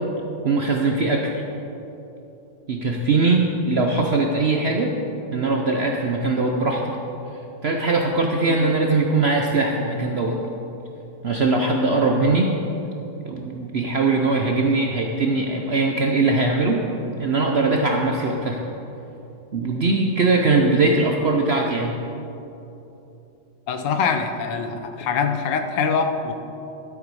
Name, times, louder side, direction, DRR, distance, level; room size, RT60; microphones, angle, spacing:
voice 1, 0.4-1.4 2.7-5.0 5.3-7.0 7.6-10.4 11.2-12.6 13.2-16.8 17.2-18.6 19.5-22.0, right 3 dB, 60° right, 1 dB, 0.7 m, -21 dB
voice 2, 23.7-26.3, left 5 dB, 85° left, 7 dB, 1.5 m, -24 dB
12.5 x 8.4 x 4.8 m, 3.0 s
omnidirectional pair, 1.9 m